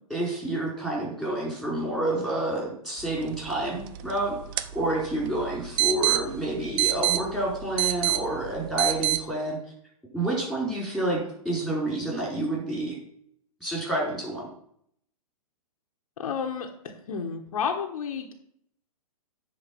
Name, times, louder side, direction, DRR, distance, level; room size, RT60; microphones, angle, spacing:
voice 1, 0.1-9.6 10.1-13.0 13.6-14.5, right 1 dB, ahead, -3 dB, 4.4 m, -29 dB
sound 1, 3.0-9.2, right 14 dB, 40° right, 0.6 m, -29 dB
voice 2, 16.2-18.3, left 6 dB, 70° left, 3 dB, 1.3 m, -31 dB
9.6 x 4.5 x 6.1 m, 0.67 s
hypercardioid pair, 125°, 19 cm